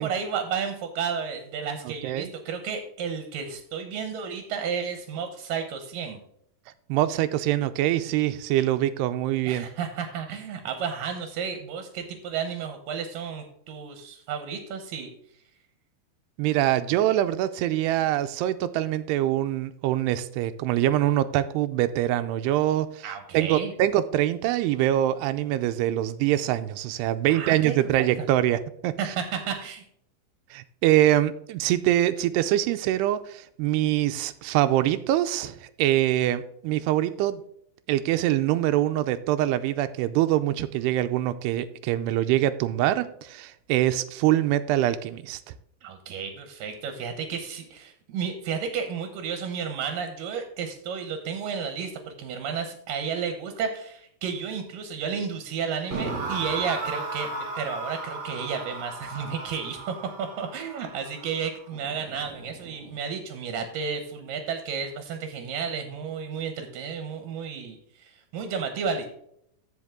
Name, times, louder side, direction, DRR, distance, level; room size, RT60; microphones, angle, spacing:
voice 1, 0.0-6.2 9.5-15.1 23.0-23.7 27.3-27.8 28.2-28.3 29.0-29.8 45.8-69.1, right 6 dB, 70° right, 6 dB, 2.3 m, -32 dB
voice 2, 1.9-2.3 6.9-9.7 16.4-23.1 23.3-29.1 30.5-37.4 37.9-45.4, right 13 dB, 85° right, 11 dB, 2.7 m, -24 dB
sound 1, 55.9-63.0, right 3 dB, 35° right, 2.0 m, -36 dB
15.0 x 5.0 x 3.7 m, 0.71 s
omnidirectional pair, 4.7 m